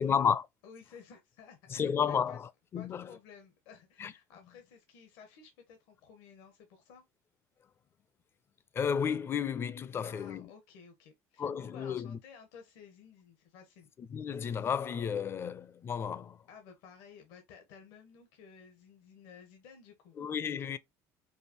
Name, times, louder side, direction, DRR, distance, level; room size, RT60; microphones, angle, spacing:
voice 1, 0.0-0.5 1.7-3.1 4.0-4.1 8.7-10.5 11.4-12.2 14.0-16.4 20.2-20.8, left 7 dB, 35° left, 0.5 m, -32 dB
voice 2, 0.6-2.4 2.7-7.0 10.0-13.9 16.5-20.2, left 6 dB, 80° left, 1.1 m, -54 dB
4.8 x 2.5 x 2.8 m
supercardioid pair, 105°, 7 cm